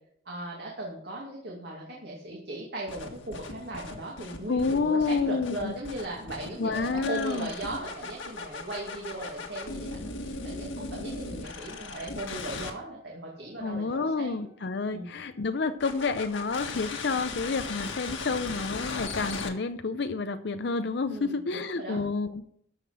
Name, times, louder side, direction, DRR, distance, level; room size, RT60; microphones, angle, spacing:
voice 1, 0.3-14.5 14.9-15.1 21.1-22.0, right 1 dB, 55° right, -3 dB, 2.4 m, -38 dB
sound 1, 2.9-12.7 15.8-19.5, left 3 dB, 70° left, 1.7 m, -38 dB
voice 2, 4.5-5.7 6.6-7.5 13.6-22.6, left 4 dB, 55° left, 10 dB, 0.5 m, -29 dB
13.5 x 5.9 x 6.2 m, 0.66 s
head